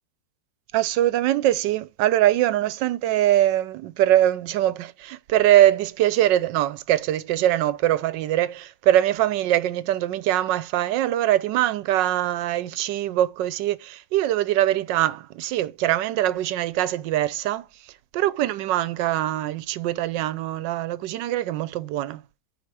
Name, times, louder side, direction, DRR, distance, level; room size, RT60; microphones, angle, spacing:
voice 1, 0.7-17.7 18.1-22.2, right 13 dB, 80° right, 1.2 m, -22 dB
6.3 x 4.3 x 4.7 m
omnidirectional pair, 1.9 m